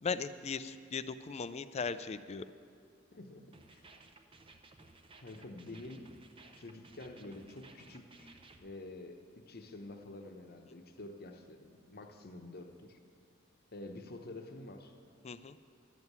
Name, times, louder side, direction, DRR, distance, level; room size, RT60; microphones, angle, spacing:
voice 1, 0.0-2.5 15.2-15.6, left 5 dB, 35° left, 13 dB, 0.4 m, -38 dB
voice 2, 3.1-3.9 5.2-6.1 6.5-13.0 13.7-15.0, left 2 dB, 50° left, 5 dB, 0.9 m, -48 dB
sound 1, 3.5-8.6, right 3 dB, 25° right, 0.7 m, -58 dB
12.0 x 7.3 x 8.1 m, 2.3 s
head